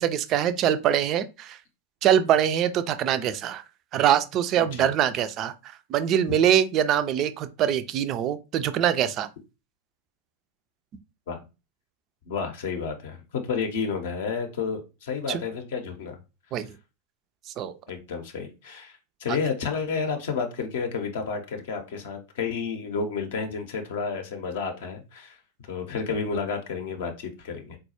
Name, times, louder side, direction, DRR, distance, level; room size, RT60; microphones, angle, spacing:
voice 1, 0.0-1.6 2.0-3.6 3.9-9.3 15.3-15.4 16.5-16.7 17.5-17.7 19.3-19.4, right 10 dB, 35° right, 0.3 m, -23 dB
voice 2, 4.6-4.9 6.3-6.4 11.3-11.4 12.2-16.2 17.9-25.4 25.7-27.8, left 5 dB, 55° left, 0.6 m, -31 dB
3.9 x 2.2 x 2.8 m
figure-of-eight pair, 90°, 0 cm